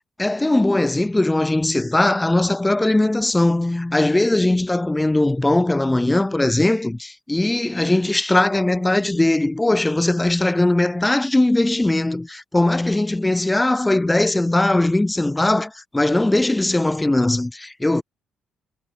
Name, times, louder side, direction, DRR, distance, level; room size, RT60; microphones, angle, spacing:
voice 1, 0.2-18.0, left 2 dB, 10° left, 0.3 m, -19 dB
cardioid pair, 90°, 0 cm